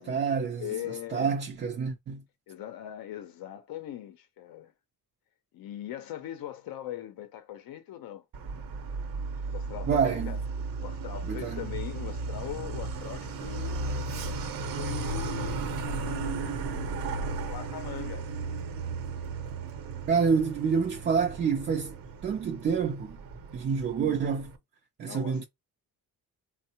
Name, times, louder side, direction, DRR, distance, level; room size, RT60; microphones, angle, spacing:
voice 1, 0.0-0.8 1.1-2.2 9.9-10.3 11.3-11.7 20.1-23.2 23.5-24.5 25.0-25.4, right 6 dB, 30° right, 0.4 m, -28 dB
voice 2, 0.6-1.4 2.5-4.7 5.5-8.2 9.5-10.4 10.8-14.1 14.8-17.2 17.5-18.3 25.0-25.4, left 11 dB, 75° left, 0.6 m, -40 dB
Truck, 8.3-24.6, right 3 dB, 70° right, 0.8 m, -35 dB
3.5 x 2.0 x 2.8 m
cardioid pair, 130°, 36 cm